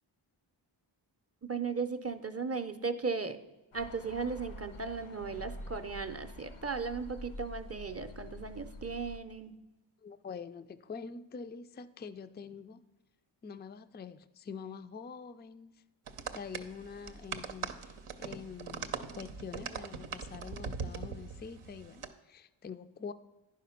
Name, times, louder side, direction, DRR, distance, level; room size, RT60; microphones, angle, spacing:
voice 1, 1.4-3.4 3.7-9.5, right 5 dB, 30° right, 0.5 m, -36 dB
sound 1, 3.7-9.2, left 1 dB, 85° left, 0.8 m, -47 dB
voice 2, 10.0-12.8 13.4-15.7 16.3-23.1, left 6 dB, 25° left, 0.3 m, -45 dB
sound 2, 16.1-22.1, right 5 dB, 85° right, 0.7 m, -41 dB
10.5 x 5.1 x 5.7 m
wide cardioid pair, 55°, 48 cm